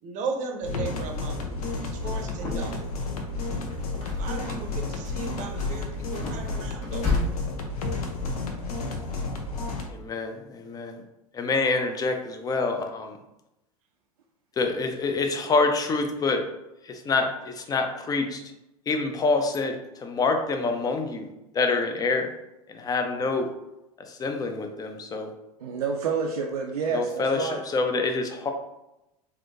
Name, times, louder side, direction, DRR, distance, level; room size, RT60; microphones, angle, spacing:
voice 1, 0.0-2.9 4.1-7.1, right 4 dB, 40° right, 4 dB, 0.7 m, -36 dB
sound 1, 0.6-9.8, left 3 dB, 75° left, 0.6 m, -32 dB
sound 2, 1.9-2.9 3.3-4.7 5.0-7.3, left 3 dB, 40° left, 1.2 m, -32 dB
voice 2, 9.9-11.0 11.3-13.2 14.6-16.4 16.8-18.4 18.9-21.3 21.5-22.3 22.7-23.5 24.1-25.3 26.9-28.5, left 3 dB, 20° left, 5 dB, 0.5 m, -26 dB
voice 3, 25.6-27.6, right 5 dB, 85° right, 0 dB, 0.4 m, -29 dB
3.4 x 2.6 x 2.6 m, 0.91 s
hypercardioid pair, 90°, 19 cm